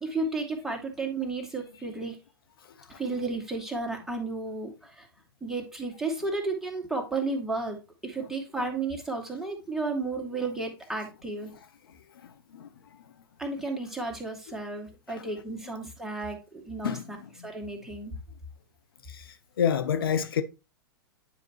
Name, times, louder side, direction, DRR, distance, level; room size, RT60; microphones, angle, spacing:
voice 1, 0.0-2.2 2.9-5.1 5.4-11.5 13.4-16.9 17.4-18.1, right 3 dB, 5° right, 2.2 m, -33 dB
voice 2, 12.2-12.7 15.1-15.3 16.8-17.5 19.1-20.4, left 8 dB, 70° left, 0.7 m, -30 dB
9.8 x 5.2 x 3.0 m
figure-of-eight pair, 100°, 12 cm